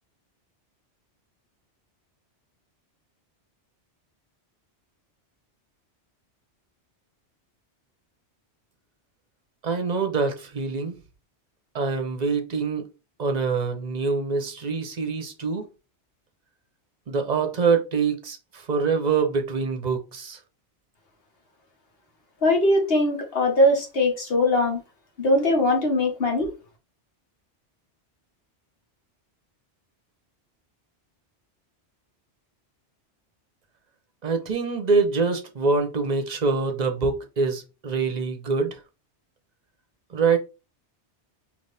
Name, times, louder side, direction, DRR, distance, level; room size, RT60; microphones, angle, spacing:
voice 1, 9.6-11.0 11.7-12.8 13.2-15.7 17.1-20.4 34.2-38.8 40.1-40.4, right 4 dB, 40° right, 0.8 m, -25 dB
voice 2, 22.4-24.8 25.2-26.5, left 1 dB, 60° left, 1.5 m, -21 dB
4.1 x 2.9 x 3.4 m
omnidirectional pair, 1.2 m